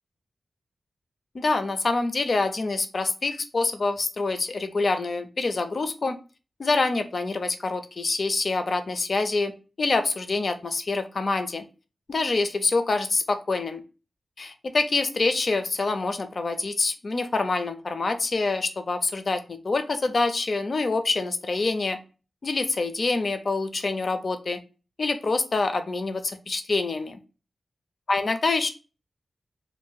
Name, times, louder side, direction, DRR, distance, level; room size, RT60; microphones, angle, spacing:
voice 1, 1.3-6.2 6.6-11.7 12.1-13.8 14.4-22.0 22.4-24.6 25.0-27.1 28.1-28.7, left 3 dB, 55° left, 9 dB, 0.4 m, -26 dB
2.6 x 2.5 x 3.7 m, 0.33 s
wide cardioid pair, 95°, 0 cm